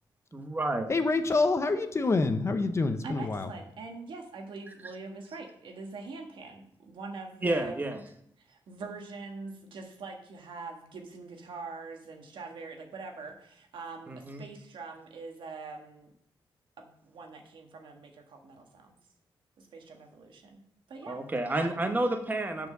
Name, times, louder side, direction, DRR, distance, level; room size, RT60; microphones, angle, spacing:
voice 1, 0.3-0.9 7.4-8.0 14.1-14.4 21.1-22.7, right 2 dB, 20° right, 6 dB, 1.0 m, -30 dB
voice 2, 0.9-3.5, left 3 dB, 35° left, 9 dB, 0.7 m, -26 dB
voice 3, 3.0-7.8 8.4-16.1 16.8-19.0 19.6-20.6 20.9-21.2 21.5-21.8, right 3 dB, 75° right, 3 dB, 1.4 m, -43 dB
7.0 x 4.5 x 6.6 m, 0.71 s
cardioid pair, 105°, 8 cm